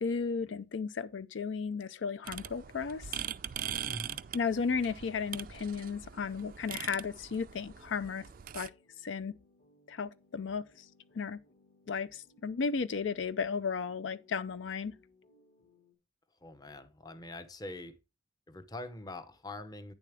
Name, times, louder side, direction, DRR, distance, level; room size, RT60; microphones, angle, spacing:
voice 1, 0.0-3.1 4.3-8.2 8.5-8.7 9.0-9.3 9.9-10.6 11.2-11.4 11.9-14.9, left 5 dB, 75° left, 0.5 m, -34 dB
sound 1, 2.2-8.7, right 10 dB, 45° right, 0.4 m, -42 dB
voice 2, 3.9-4.2 16.4-18.0 18.5-19.9, left 2 dB, 20° left, 0.7 m, -44 dB
sound 2, 4.3-16.0, left 2 dB, 55° left, 2.2 m, -66 dB
9.3 x 7.0 x 3.4 m
head